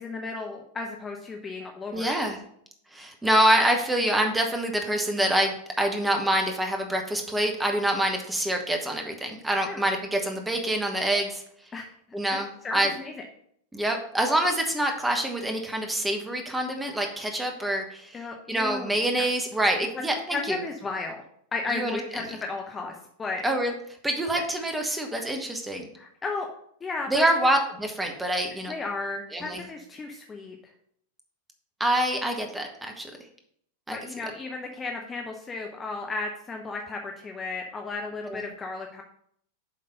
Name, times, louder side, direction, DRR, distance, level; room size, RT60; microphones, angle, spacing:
voice 1, 0.0-2.1 9.7-9.8 11.7-11.9 12.3-13.1 18.1-19.3 20.3-21.2 21.5-23.4 24.3-24.4 25.9-26.5 26.8-27.3 28.7-30.6 33.9-39.0, left 3 dB, 20° left, 2 dB, 0.7 m, -34 dB
voice 2, 1.9-2.4 2.9-11.4 12.1-12.9 13.7-18.2 18.5-20.6 21.7-22.0 23.4-23.7 24.0-25.9 27.1-28.7 29.3-29.6 31.8-33.1 33.9-34.0 38.3-38.4, right 1 dB, 5° right, 3 dB, 1.2 m, -26 dB
7.3 x 3.9 x 5.3 m, 0.68 s
figure-of-eight pair, 90°, 0 cm